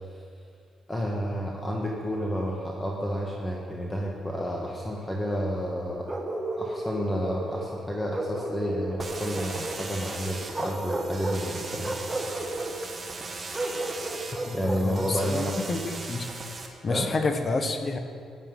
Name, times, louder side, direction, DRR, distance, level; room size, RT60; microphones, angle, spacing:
voice 1, 0.9-6.1 6.6-11.9 14.5-15.6 16.9-17.1, equal, 15° left, -1 dB, 1.5 m, -30 dB
Bark, 6.1-7.7 8.1-9.8 10.5-11.5 11.8-12.8 13.5-15.2, right 2 dB, 15° right, 1.5 m, -33 dB
sound 1, 9.0-16.7, right 3 dB, 30° right, 1.6 m, -39 dB
voice 2, 14.8-16.3 16.8-18.0, left 3 dB, 35° left, 6 dB, 1.2 m, -29 dB
14.0 x 10.0 x 5.5 m, 2.3 s
cardioid pair, 90°, 0 cm